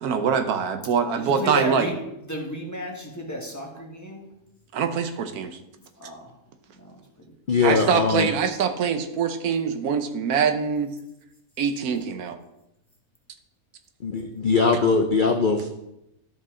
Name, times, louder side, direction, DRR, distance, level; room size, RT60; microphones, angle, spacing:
voice 1, 0.0-1.9 4.7-5.6 7.6-11.0 11.6-12.4, right 6 dB, 90° right, 8 dB, 1.3 m, -24 dB
voice 2, 1.1-4.3 6.0-6.3 6.7-7.3, right 1 dB, 10° left, -1 dB, 1.3 m, -33 dB
voice 3, 7.5-8.3 14.0-15.7, left 4 dB, 60° left, 5 dB, 0.5 m, -21 dB
12.0 x 5.2 x 3.7 m, 0.86 s
omnidirectional pair, 1.5 m